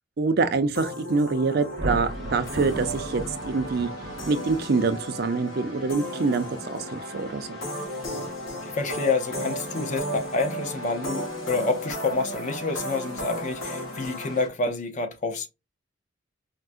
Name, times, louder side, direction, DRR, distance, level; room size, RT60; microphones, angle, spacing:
voice 1, 0.2-3.9 4.3-7.6, right 4 dB, 50° right, 0.4 m, -25 dB
sound 1, 0.8-14.5, equal, 75° left, 1.1 m, -35 dB
Thunder, 1.6-5.0, right 1 dB, 75° right, 0.8 m, -35 dB
voice 2, 8.6-15.5, left 3 dB, 40° left, 0.5 m, -28 dB
4.4 x 2.1 x 2.4 m
head